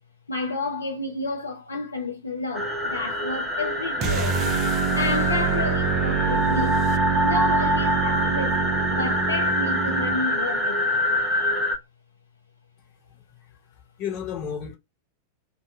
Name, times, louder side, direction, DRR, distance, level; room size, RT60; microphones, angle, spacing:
voice 1, 0.3-4.4 4.9-6.8 7.2-8.6 8.9-10.8, left 3 dB, 75° left, 0.3 m, -31 dB
sound 1, 2.5-11.8, left 1 dB, 10° right, 0.8 m, -25 dB
sound 2, 4.0-10.2, right 7 dB, 35° right, 0.3 m, -26 dB
voice 2, 13.1-13.6 14.0-14.8, left 8 dB, 40° left, 1.2 m, -33 dB
2.4 x 2.2 x 2.4 m
figure-of-eight pair, 90°, 0 cm